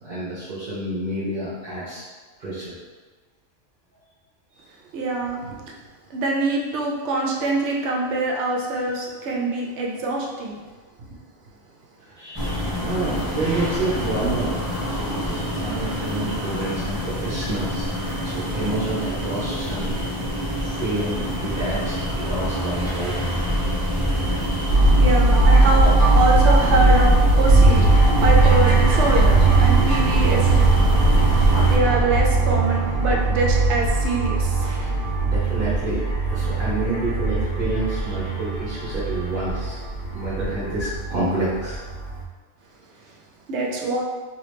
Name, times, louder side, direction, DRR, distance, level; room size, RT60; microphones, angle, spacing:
voice 1, 0.0-2.0 2.4-2.7 12.2-14.5 15.0-17.8 18.2-19.9 20.6-23.1 34.7-34.9 35.2-39.8 40.1-41.8, right 2 dB, 50° right, -10 dB, 1.1 m, -28 dB
voice 2, 4.9-5.6 6.1-10.5 12.5-12.7 25.0-27.9 28.1-30.7 31.7-35.0 43.5-44.0, right 2 dB, 70° right, -2 dB, 0.9 m, -24 dB
sound 1, 12.3-31.8, equal, 20° right, 1.2 m, -25 dB
sound 2, 24.7-42.2, right 3 dB, 55° left, 0.9 m, -19 dB
2.9 x 2.8 x 3.2 m, 1.3 s
omnidirectional pair, 1.2 m